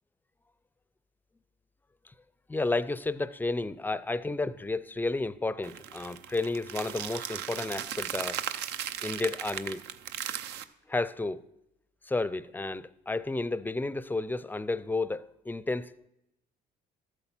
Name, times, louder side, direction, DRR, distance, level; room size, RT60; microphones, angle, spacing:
voice 1, 2.5-8.4 9.0-9.8 10.9-11.4 12.0-16.1, left 3 dB, 10° left, 0.4 m, -32 dB
sound 1, 5.6-10.6, right 10 dB, 85° right, 0.7 m, -37 dB
13.5 x 8.0 x 6.0 m
cardioid pair, 110°, 17 cm